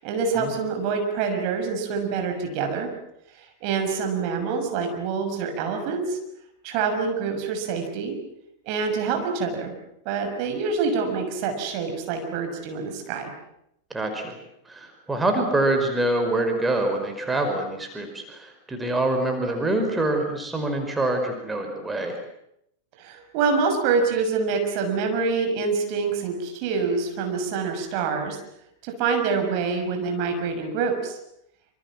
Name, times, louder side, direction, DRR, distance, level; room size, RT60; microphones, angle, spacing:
voice 1, 0.0-2.9 3.4-6.2 6.6-8.2 8.6-9.8 10.0-13.3 23.0-28.4 28.8-31.2, right 5 dB, 45° right, 4 dB, 6.4 m, -26 dB
voice 2, 13.9-14.4 14.7-22.2, right 2 dB, 10° right, 4 dB, 5.0 m, -25 dB
27.0 x 27.0 x 7.5 m, 0.77 s
figure-of-eight pair, 90°, 0 cm